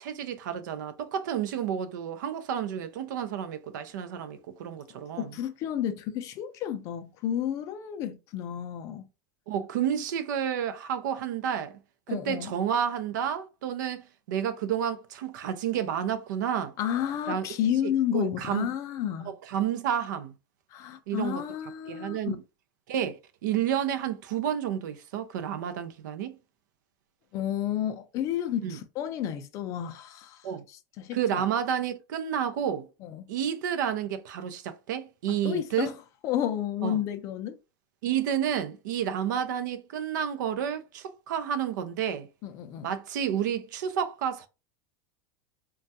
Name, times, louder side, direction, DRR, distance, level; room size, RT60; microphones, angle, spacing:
voice 1, 0.0-5.3 9.5-11.8 12.1-16.7 17.3-17.5 18.1-18.7 19.3-20.3 21.1-21.4 21.9-22.4 22.9-26.3 28.6-28.8 30.4-30.6 31.1-32.9 33.3-35.9 36.8-37.0 38.0-42.3 42.8-44.5, right 9 dB, 85° right, 0.5 m, -30 dB
voice 2, 4.9-9.1 12.1-12.5 16.8-19.3 20.7-22.4 27.3-31.4 33.0-33.3 35.3-35.9 36.2-37.6 42.4-42.9, left 10 dB, 35° left, 0.4 m, -31 dB
3.3 x 2.2 x 2.7 m
supercardioid pair, 165°, 10 cm